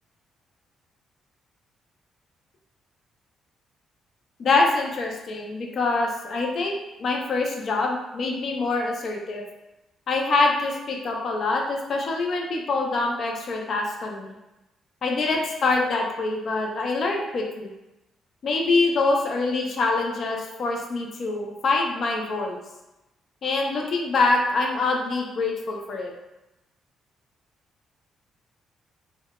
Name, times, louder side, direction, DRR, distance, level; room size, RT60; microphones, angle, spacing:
voice 1, 4.4-9.4 10.1-14.4 15.0-17.7 18.4-22.6 23.4-26.1, left 3 dB, 45° left, 1 dB, 0.3 m, -25 dB
2.1 x 2.0 x 2.8 m, 0.97 s
cardioid pair, 165°, 0 cm